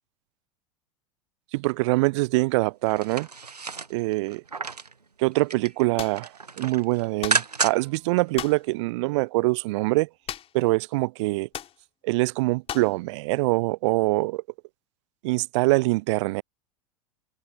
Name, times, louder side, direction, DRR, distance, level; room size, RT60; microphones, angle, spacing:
voice 1, 1.5-3.3 3.9-4.4 5.2-10.1 10.5-11.5 12.0-14.4 15.2-16.4, right 23 dB, 50° right, 0.5 m, -24 dB
sound 1, 2.9-4.9 5.3-5.8 6.1-8.0 8.3-8.4, right 4 dB, 85° right, 1.1 m, -31 dB
sound 2, 6.0-6.2 7.2-7.5 8.4-8.7 10.3-10.7 10.9-11.0 11.5-11.8 12.7-13.0, left 10 dB, 30° left, 3.3 m, -35 dB
figure-of-eight pair, 85°, 20 cm